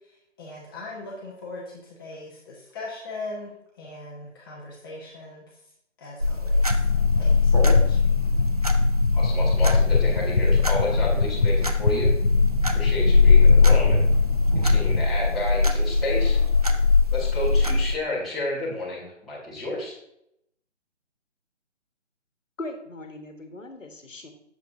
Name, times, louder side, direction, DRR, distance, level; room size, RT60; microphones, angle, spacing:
voice 1, 0.4-5.4 6.0-6.8 7.2-8.0, left 2 dB, 20° left, -4 dB, 1.0 m, -40 dB
sound 1, 6.2-17.9, left 4 dB, 35° right, 0.4 m, -20 dB
sound 2, 6.7-15.1, left 4 dB, 45° left, 0.4 m, -29 dB
voice 2, 9.1-12.1 12.7-14.1 14.6-16.4 17.1-20.0, left 1 dB, ahead, -13 dB, 1.4 m, -31 dB
voice 3, 22.6-24.3, left 2 dB, 90° left, 5 dB, 1.5 m, -39 dB
7.5 x 7.1 x 2.7 m, 0.78 s
figure-of-eight pair, 150°, 37 cm